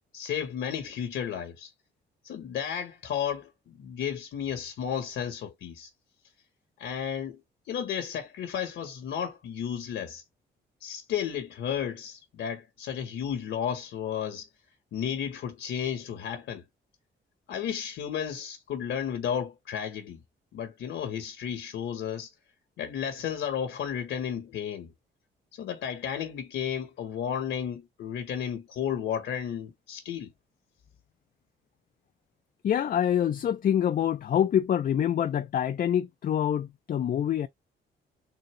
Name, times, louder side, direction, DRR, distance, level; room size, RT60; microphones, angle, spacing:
voice 1, 0.1-1.7 2.2-5.9 6.8-7.4 7.7-10.2 10.8-14.5 14.9-16.6 17.5-20.2 20.5-22.3 22.8-24.9 25.5-30.3, left 8 dB, 75° left, 1.2 m, -33 dB
voice 2, 32.6-37.5, left 9 dB, 45° left, 0.4 m, -26 dB
4.0 x 2.7 x 3.2 m
cardioid pair, 90°, 20 cm